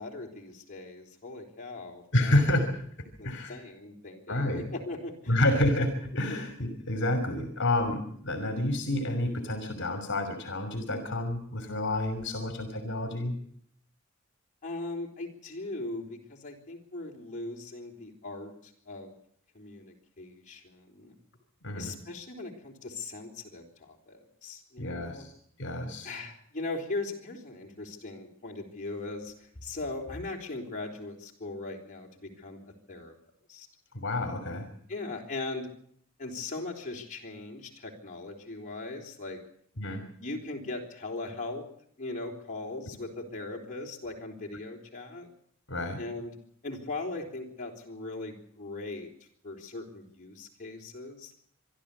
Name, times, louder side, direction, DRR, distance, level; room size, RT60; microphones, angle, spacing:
voice 1, 0.0-2.4 3.2-5.4 6.3-6.4 14.6-19.1 19.5-21.1 21.8-25.2 26.0-33.1 33.5-33.7 34.9-35.7 36.2-39.4 40.2-41.7 42.0-45.3 46.0-46.4 46.6-49.1 49.4-51.3, left 2 dB, 40° left, 0 dB, 4.0 m, -39 dB
voice 2, 2.1-2.8 3.2-3.6 4.3-4.7 5.3-13.3 21.6-21.9 24.8-25.3 25.6-26.1 33.9-34.7 39.8-40.0 45.7-46.0, left 1 dB, 60° left, 8 dB, 2.9 m, -29 dB
25.0 x 12.5 x 8.5 m, 0.65 s
head